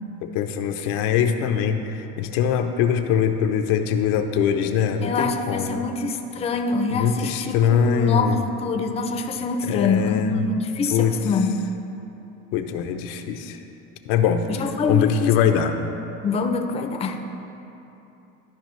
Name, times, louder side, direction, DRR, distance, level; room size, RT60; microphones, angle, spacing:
voice 1, 0.2-5.8 6.9-8.4 9.6-10.4 10.9-11.2 12.5-13.6 14.1-14.4 14.9-15.7, left 8 dB, 80° left, 6 dB, 0.6 m, -22 dB
voice 2, 5.0-11.5 14.5-15.3 16.2-17.2, left 4 dB, 20° left, 4 dB, 0.5 m, -25 dB
12.5 x 4.8 x 3.1 m, 2.9 s
cardioid pair, 120°, 31 cm